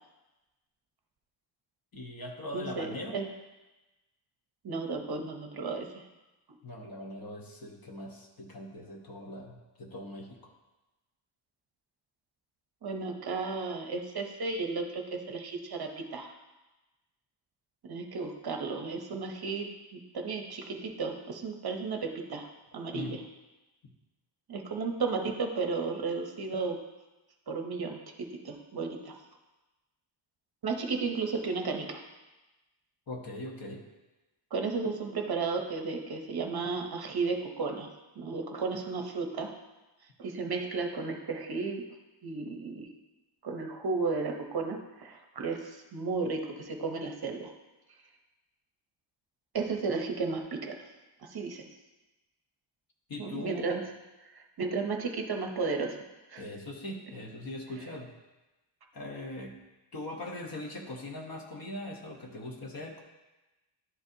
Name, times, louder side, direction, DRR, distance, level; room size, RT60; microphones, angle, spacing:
voice 1, 1.9-3.2 6.6-10.5 22.9-23.1 23.8-23.9 33.1-33.8 53.1-53.9 56.4-58.1 58.9-59.6 59.9-63.0, left 1 dB, 45° left, 1 dB, 0.9 m, -41 dB
voice 2, 2.5-3.3 4.6-6.0 12.8-16.3 17.9-22.5 22.7-23.2 24.5-26.8 27.5-28.0 28.4-29.1 30.6-32.0 34.5-37.9 38.2-39.5 40.2-41.8 42.2-42.9 43.4-47.5 49.5-50.9 51.3-51.6 53.2-53.8 54.3-56.0 56.3-56.4, right 4 dB, 50° right, 3 dB, 0.7 m, -33 dB
11.0 x 4.1 x 2.7 m, 1.1 s
wide cardioid pair, 150°, 49 cm